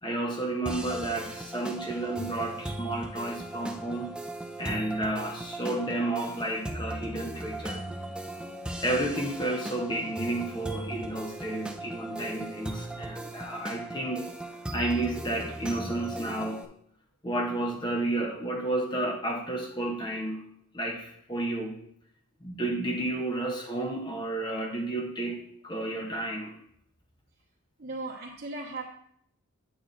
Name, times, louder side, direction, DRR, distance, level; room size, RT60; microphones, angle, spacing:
voice 1, 0.0-4.1 4.6-7.8 8.8-14.3 14.7-16.6 17.2-20.4 20.7-21.8 22.4-26.6, right 1 dB, 20° left, 2 dB, 0.8 m, -31 dB
sound 1, 0.7-16.7, right 1 dB, 5° right, 0.3 m, -38 dB
voice 2, 27.8-28.8, right 3 dB, 45° right, -5 dB, 1.1 m, -37 dB
8.6 x 7.8 x 2.6 m, 0.68 s
head